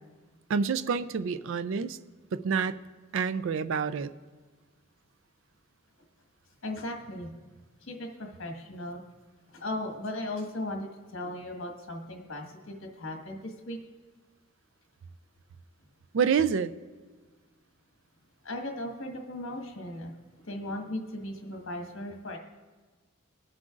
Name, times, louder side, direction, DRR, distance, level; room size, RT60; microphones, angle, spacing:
voice 1, 0.5-2.0 2.3-2.8 3.1-4.1 16.1-16.7, right 6 dB, 60° right, 14 dB, 0.4 m, -27 dB
voice 2, 6.6-7.3 7.9-9.0 9.5-13.8 18.4-20.1 20.4-22.4, left 1 dB, 60° left, 2 dB, 1.6 m, -37 dB
22.5 x 7.6 x 2.5 m, 1.4 s
head